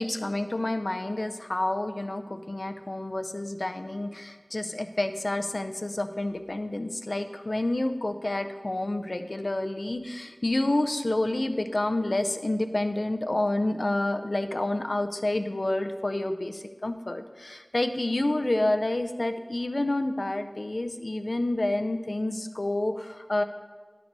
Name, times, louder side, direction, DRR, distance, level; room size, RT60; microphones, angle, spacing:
voice 1, 0.0-23.4, left 1 dB, 70° left, 7 dB, 0.5 m, -29 dB
11.5 x 4.0 x 4.6 m, 1.4 s
wide cardioid pair, 40°, 0 cm